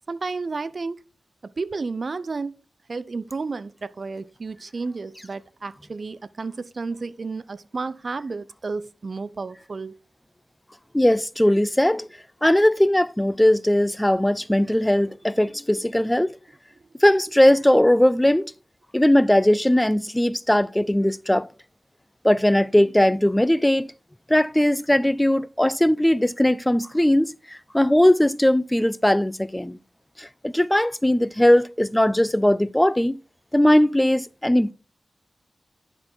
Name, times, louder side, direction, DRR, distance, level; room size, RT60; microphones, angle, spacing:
voice 1, 0.1-1.0 1.4-2.5 2.9-10.0, right 4 dB, 55° right, 0.5 m, -32 dB
voice 2, 10.9-12.1 12.4-16.3 17.0-18.5 18.9-21.5 22.2-23.9 24.3-27.3 27.7-29.8 30.2-33.2 33.5-34.7, left 1 dB, 10° left, 0.3 m, -19 dB
11.0 x 3.9 x 4.4 m
cardioid pair, 50°, 0 cm